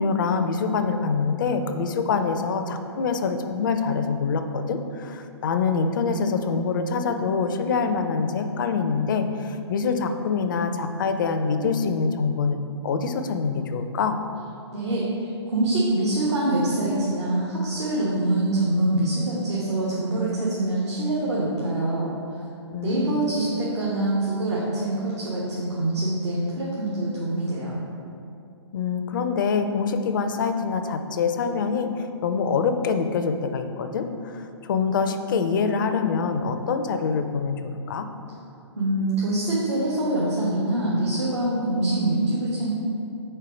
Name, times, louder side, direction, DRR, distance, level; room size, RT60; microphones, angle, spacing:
voice 1, 0.0-14.2 22.7-23.2 28.7-31.9 32.2-38.1, left 5 dB, 45° left, 7 dB, 0.4 m, -25 dB
voice 2, 14.7-22.1 22.8-27.8 38.7-42.7, right 1 dB, 75° right, -6 dB, 1.1 m, -25 dB
4.7 x 4.5 x 4.9 m, 2.6 s
figure-of-eight pair, 125°, 15 cm